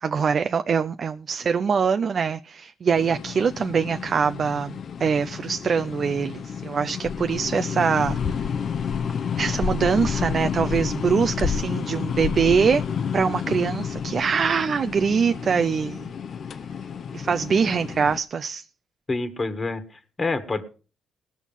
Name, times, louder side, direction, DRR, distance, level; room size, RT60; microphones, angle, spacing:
voice 1, 0.0-4.7 5.0-8.2 9.4-12.8 13.1-16.1 17.1-18.6, right 6 dB, 45° right, 0.5 m, -23 dB
sound 1, 3.0-18.2, left 7 dB, 55° left, 0.7 m, -30 dB
voice 2, 19.1-20.6, left 3 dB, 30° left, 1.6 m, -27 dB
19.0 x 6.3 x 5.4 m
cardioid pair, 90°, 0 cm